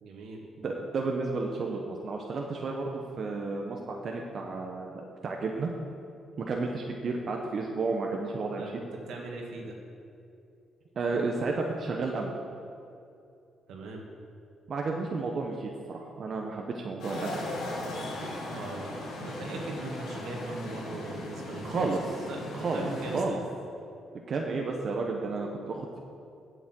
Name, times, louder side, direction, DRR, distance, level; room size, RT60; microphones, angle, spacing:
voice 1, 0.0-0.4 8.5-8.7 9.1-9.8 13.7-14.0 18.5-18.9 19.2-21.9 22.3-22.5 22.7-23.4, right 2 dB, 80° right, 0 dB, 1.9 m, -39 dB
voice 2, 0.6-5.7 6.4-8.6 10.9-12.3 14.7-17.4 21.6-22.3 22.5-22.9 23.1-23.4 24.3-26.0, right 3 dB, 50° right, 1 dB, 1.0 m, -32 dB
sound 1, 17.0-23.2, left 1 dB, 90° left, 2.7 m, -38 dB
8.4 x 7.1 x 8.0 m, 2.6 s
cardioid pair, 90°, 0 cm